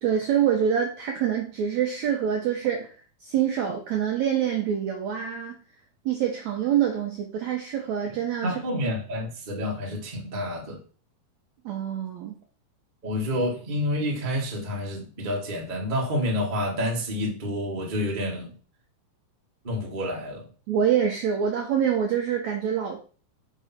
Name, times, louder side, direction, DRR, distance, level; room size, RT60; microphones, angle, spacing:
voice 1, 0.0-2.9 3.2-5.6 6.0-8.5 11.6-12.3 20.7-23.0, right 8 dB, 75° right, 1.6 m, -25 dB
voice 2, 8.4-10.8 13.0-18.5 19.6-20.5, left 1 dB, 35° right, 0.7 m, -29 dB
6.2 x 3.7 x 5.7 m
omnidirectional pair, 4.4 m